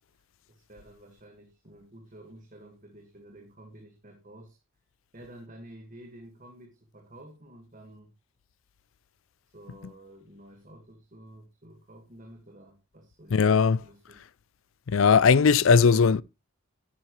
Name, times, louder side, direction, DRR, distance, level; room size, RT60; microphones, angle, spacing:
voice 1, 0.5-4.6 5.1-8.1 9.5-14.3, right 1 dB, 40° right, 1.8 m, -50 dB
voice 2, 13.3-13.8 14.9-16.2, left 5 dB, 70° left, 0.4 m, -19 dB
11.0 x 10.0 x 3.2 m
head